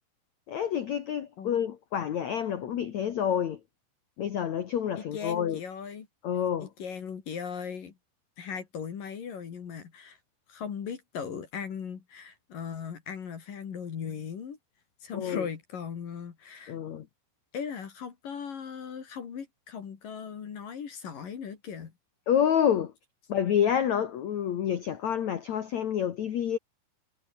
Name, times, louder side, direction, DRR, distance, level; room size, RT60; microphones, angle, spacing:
voice 1, 0.5-3.6 4.2-5.6 6.2-6.7 15.1-15.5 16.7-17.0 22.3-22.9 23.3-26.6, left 9 dB, 85° left, 1.5 m, -28 dB
voice 2, 5.0-6.1 6.6-7.9 8.4-10.2 10.5-14.6 15.0-16.8 17.5-21.9, left 7 dB, 50° left, 3.9 m, -38 dB
omnidirectional pair, 5.5 m